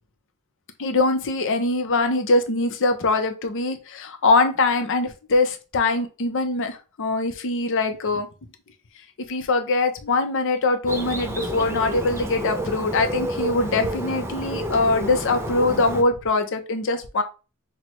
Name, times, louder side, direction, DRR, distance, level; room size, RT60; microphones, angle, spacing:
voice 1, 0.8-8.3 9.3-17.2, left 3 dB, 60° left, 7 dB, 0.6 m, -22 dB
Bird, 10.9-16.0, right 1 dB, 10° right, 0.5 m, -30 dB
6.0 x 2.2 x 3.0 m, 0.32 s
head